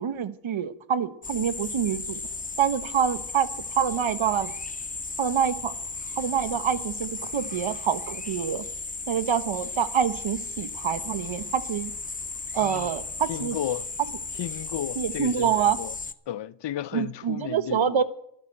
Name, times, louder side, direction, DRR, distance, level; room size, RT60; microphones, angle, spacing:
voice 1, 0.0-2.2 2.6-3.5 3.8-4.5 5.2-5.7 6.2-8.6 9.1-11.9 12.6-13.6 14.9-15.8 16.9-18.0, right 8 dB, 70° right, 1.1 m, -26 dB
sound 1, 1.2-16.1, left 3 dB, 15° left, 0.8 m, -35 dB
voice 2, 12.5-12.9 13.3-13.9 14.4-15.5 15.8-15.9 16.3-18.0, left 11 dB, 60° left, 0.6 m, -33 dB
12.5 x 11.0 x 7.5 m
cardioid pair, 60°, 49 cm